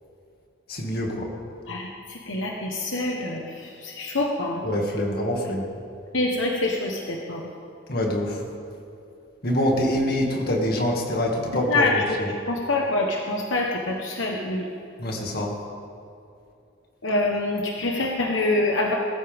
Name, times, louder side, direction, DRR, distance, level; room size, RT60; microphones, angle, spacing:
voice 1, 0.7-1.3 4.6-5.6 7.9-8.4 9.4-12.3 15.0-15.5, left 1 dB, 50° left, -1 dB, 2.2 m, -25 dB
voice 2, 2.3-3.4 3.8-4.6 6.1-7.4 11.7-11.9 12.5-14.6 17.0-19.0, left 2 dB, 75° left, 0 dB, 1.2 m, -25 dB
21.0 x 13.5 x 3.6 m, 2.6 s
head